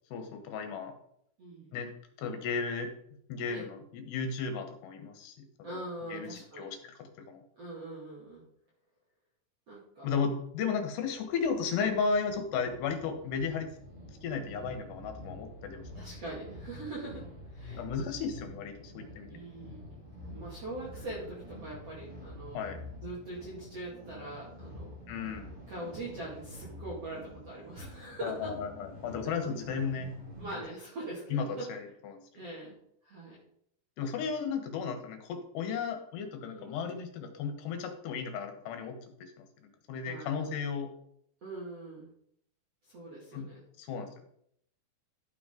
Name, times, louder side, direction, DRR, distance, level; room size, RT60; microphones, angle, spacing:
voice 1, 0.1-0.9 1.7-1.9 2.2-2.9 3.3-5.8 6.1-7.4 10.0-13.7 14.2-15.8 17.8-19.4 22.5-22.8 25.1-25.5 28.2-30.1 30.5-30.6 31.3-32.2 34.0-40.9 43.3-43.5 43.8-44.1, left 5 dB, 75° left, 5 dB, 3.2 m, -34 dB
voice 2, 1.4-1.7 3.5-3.6 5.6-6.7 7.6-8.4 9.7-10.1 15.9-17.8 19.3-20.0 20.3-22.6 23.0-24.9 25.7-28.5 30.4-31.6 32.3-32.8 33.0-33.4 36.5-36.7 40.0-40.5 41.4-42.1 42.9-43.6, right 2 dB, 40° right, -6 dB, 2.8 m, -42 dB
sound 1, 11.1-30.6, equal, 15° right, 4.1 m, -48 dB
12.0 x 7.0 x 3.8 m, 0.68 s
omnidirectional pair, 5.1 m